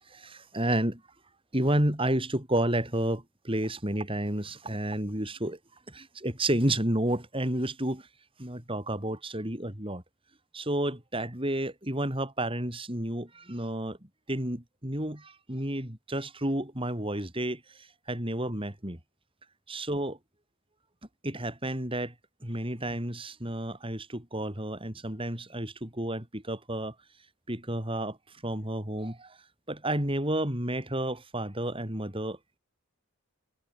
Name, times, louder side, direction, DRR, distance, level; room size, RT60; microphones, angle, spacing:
voice 1, 0.1-1.0 1.5-5.6 5.9-8.1 8.4-10.0 10.5-14.0 14.3-19.0 19.7-20.2 21.2-22.1 22.4-26.9 27.5-28.2 28.4-29.4 29.7-32.4, right 1 dB, 25° right, 4.3 m, -31 dB
head